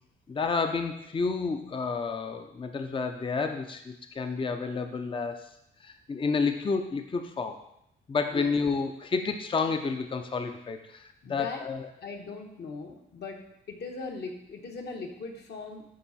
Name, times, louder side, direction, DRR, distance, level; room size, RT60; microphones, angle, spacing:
voice 1, 0.3-5.4 5.8-7.6 8.1-11.0 11.3-11.9, left 4 dB, 25° left, 6 dB, 0.6 m, -30 dB
voice 2, 11.2-11.6 12.0-13.4 13.7-15.8, left 4 dB, 60° left, 2 dB, 1.4 m, -39 dB
10.0 x 3.6 x 4.2 m, 0.79 s
cardioid pair, 90°, 20 cm